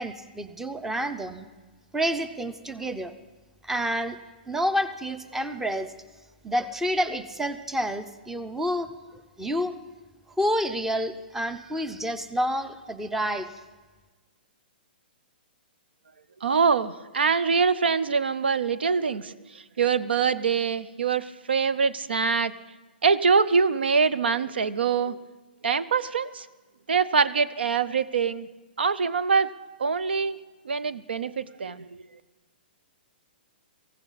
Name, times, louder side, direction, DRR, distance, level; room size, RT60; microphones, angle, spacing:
voice 1, 0.0-1.5 1.9-3.1 3.6-4.2 4.5-5.9 6.4-8.9 9.4-9.7 10.4-13.5, equal, 5° right, 12 dB, 0.7 m, -28 dB
voice 2, 16.4-22.5 23.0-25.2 25.6-26.5 26.9-28.5 28.8-29.5 29.8-30.4 30.6-32.0, right 5 dB, 80° right, 15 dB, 0.6 m, -24 dB
17.5 x 15.0 x 4.1 m, 1.3 s
hypercardioid pair, 125°, 6 cm